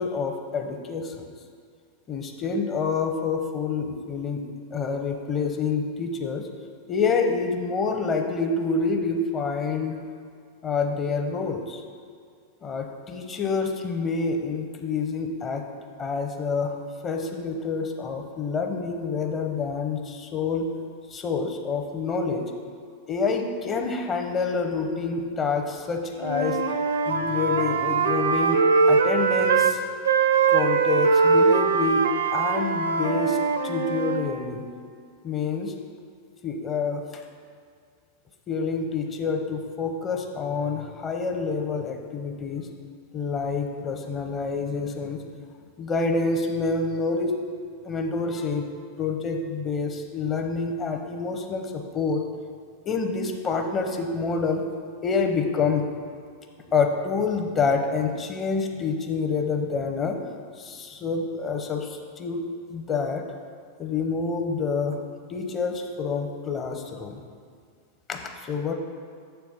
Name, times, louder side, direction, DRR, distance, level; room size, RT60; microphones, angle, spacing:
voice 1, 0.0-1.3 2.1-4.4 4.7-6.5 6.9-10.0 10.6-11.8 12.6-15.7 16.0-16.7 17.0-20.7 21.1-22.5 23.1-26.6 27.1-29.8 30.5-33.4 33.6-34.6 35.2-35.7 36.4-37.0 38.5-42.7 43.1-45.2 45.8-47.4 47.8-48.7 49.0-52.2 52.9-54.6 55.0-55.9 56.7-60.2 60.6-62.4 62.7-63.3 63.8-65.0 65.3-67.2 68.1-68.7, left 4 dB, 25° left, 4 dB, 0.7 m, -27 dB
Wind instrument woodwind instrument, 26.2-29.7 30.0-34.3, right 5 dB, 65° right, 0.5 m, -22 dB
7.2 x 4.6 x 5.4 m, 2.1 s
figure-of-eight pair, 90°, 0 cm